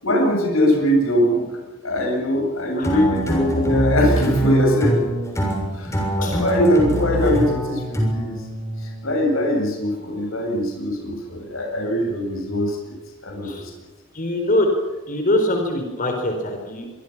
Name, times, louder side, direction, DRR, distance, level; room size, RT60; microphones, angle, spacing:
voice 1, 0.0-5.0 5.7-8.4 9.0-12.9 13.2-13.7, equal, 75° left, 1 dB, 7.8 m, -21 dB
sound 1, 2.8-9.2, right 1 dB, 15° left, 6.9 m, -24 dB
voice 2, 14.1-14.7 15.1-16.9, left 1 dB, 40° left, 4 dB, 4.4 m, -23 dB
26.5 x 24.0 x 6.1 m, 1.2 s
head